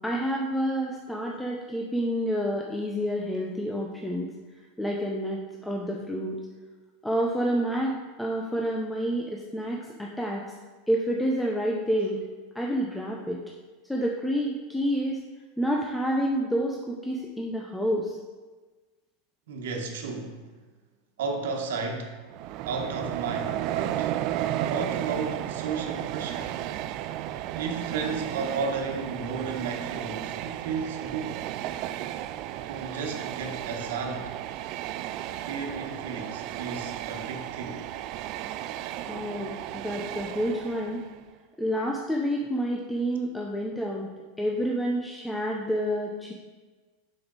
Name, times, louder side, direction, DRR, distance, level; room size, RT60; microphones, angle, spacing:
voice 1, 0.0-4.3 4.8-6.4 7.0-10.4 10.9-12.2 12.5-13.4 13.8-15.2 15.6-18.2 39.1-41.0 41.6-44.1 44.4-46.3, equal, 5° left, -1 dB, 0.6 m, -29 dB
voice 2, 19.5-20.4 21.2-22.1 22.6-24.1 24.6-26.6 27.5-31.4 32.7-34.3 35.5-37.9, right 4 dB, 85° right, 2 dB, 1.3 m, -33 dB
Train, 22.3-41.2, right 12 dB, 50° right, 0.3 m, -34 dB
6.6 x 6.1 x 4.0 m, 1.3 s
supercardioid pair, 140°, 0 cm